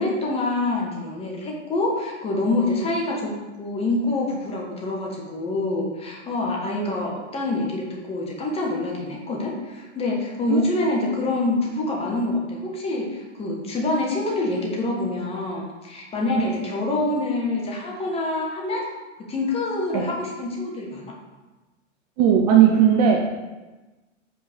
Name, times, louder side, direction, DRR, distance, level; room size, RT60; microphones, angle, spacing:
voice 1, 0.0-3.3 3.6-18.8 19.3-21.1, left 2 dB, 15° left, -2 dB, 1.3 m, -26 dB
voice 2, 22.2-23.2, right 9 dB, 30° right, 1 dB, 0.6 m, -16 dB
5.2 x 4.6 x 5.1 m, 1.2 s
figure-of-eight pair, 105°, 37 cm